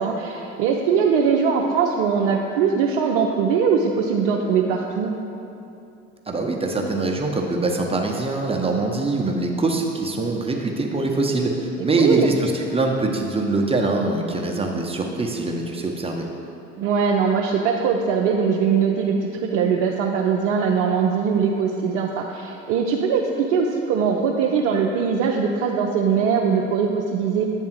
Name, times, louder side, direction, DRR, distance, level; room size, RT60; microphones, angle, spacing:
voice 1, 0.0-5.1 11.8-12.3 16.8-27.5, right 6 dB, 60° right, 0 dB, 0.7 m, -21 dB
voice 2, 6.3-16.2, right 3 dB, 15° right, 0 dB, 1.0 m, -23 dB
8.8 x 3.6 x 6.0 m, 2.7 s
hypercardioid pair, 65°, 35 cm